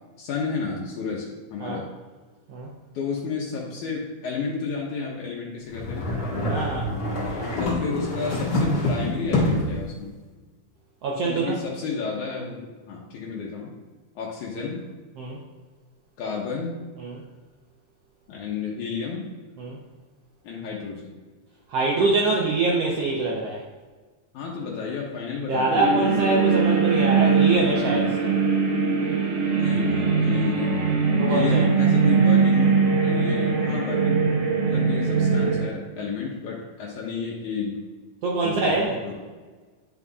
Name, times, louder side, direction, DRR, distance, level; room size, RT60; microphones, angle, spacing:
voice 1, 0.2-1.9 2.9-6.1 7.6-10.1 11.2-13.7 14.2-14.8 16.2-16.7 18.3-19.3 20.4-21.2 24.3-26.0 29.6-31.0 31.3-34.3 34.7-37.8 38.4-39.2, left 5 dB, 75° left, -3 dB, 2.2 m, -31 dB
sound 1, 5.7-9.8, left 1 dB, 45° left, 1.7 m, -26 dB
voice 2, 6.5-6.9 7.4-7.5 11.0-11.6 15.2-15.4 17.0-17.2 19.6-19.8 21.7-23.6 25.5-28.3 31.2-31.6 38.2-39.0, right 3 dB, 75° right, -3 dB, 1.4 m, -24 dB
sound 2, 25.7-35.7, right 5 dB, 55° right, 2.0 m, -21 dB
10.5 x 5.4 x 2.4 m, 1.4 s
omnidirectional pair, 3.7 m